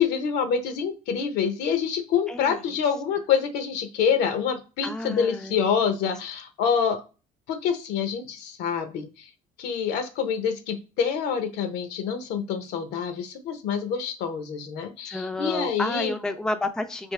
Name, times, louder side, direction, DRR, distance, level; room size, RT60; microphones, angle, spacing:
voice 1, 0.0-7.0 7.5-9.3 9.6-16.1, left 7 dB, 90° left, 8 dB, 0.7 m, -26 dB
voice 2, 2.3-2.6 4.8-5.6 15.1-17.1, left 2 dB, 5° left, 7 dB, 0.4 m, -30 dB
3.4 x 2.8 x 3.2 m, 0.33 s
cardioid pair, 110°, 17 cm